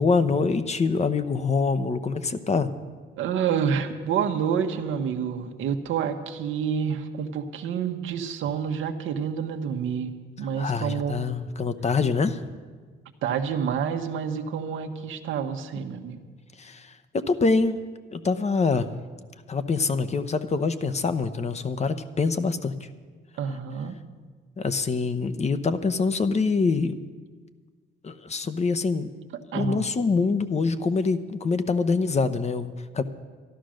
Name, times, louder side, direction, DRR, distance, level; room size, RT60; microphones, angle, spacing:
voice 1, 0.0-2.7 10.6-12.5 16.6-17.8 18.1-18.9 19.5-22.8 24.6-27.0 28.0-29.1 29.5-33.0, left 4 dB, 35° left, 11 dB, 0.8 m, -25 dB
voice 2, 3.2-10.1 10.4-11.3 13.2-16.2 23.4-23.9 29.5-29.9, right 7 dB, 80° right, 6 dB, 1.1 m, -28 dB
12.5 x 11.5 x 6.4 m, 1.5 s
cardioid pair, 90°, 20 cm